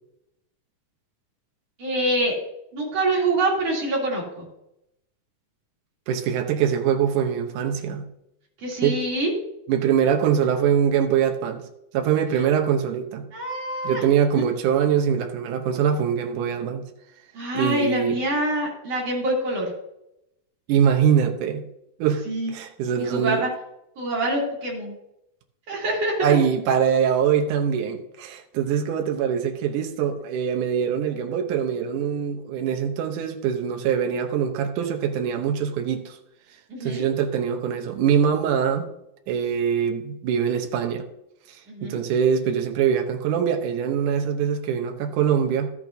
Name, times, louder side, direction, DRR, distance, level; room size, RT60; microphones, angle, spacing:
voice 1, 1.8-2.4 2.7-4.5 8.6-9.3 13.3-14.0 14.3-14.4 17.3-19.7 22.3-22.5 23.0-23.5 24.0-24.9 25.7-26.4 36.7-37.0 41.7-42.0, right 1 dB, 50° right, -4 dB, 4.0 m, -25 dB
voice 2, 6.1-8.1 8.8-9.0 9.7-11.6 11.9-13.3 13.8-16.9 17.5-18.2 20.7-21.6 22.0-22.2 22.5-23.5 26.2-36.2 36.8-38.9 39.3-41.1 41.5-45.7, right 8 dB, 80° right, 5 dB, 2.4 m, -23 dB
13.5 x 8.8 x 2.7 m, 0.83 s
omnidirectional pair, 3.6 m